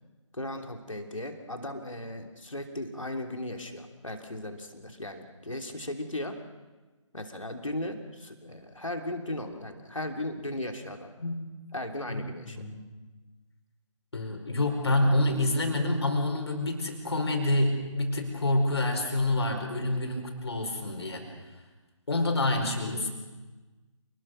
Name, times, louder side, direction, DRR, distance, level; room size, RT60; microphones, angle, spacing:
voice 1, 0.3-6.4 7.1-11.1 11.7-12.6 22.9-23.1, left 1 dB, 80° left, 4 dB, 3.1 m, -37 dB
voice 2, 12.6-12.9 14.1-21.3 22.1-23.1, left 1 dB, 55° left, 2 dB, 5.2 m, -27 dB
28.0 x 21.5 x 6.5 m, 1.2 s
figure-of-eight pair, 145°, 16 cm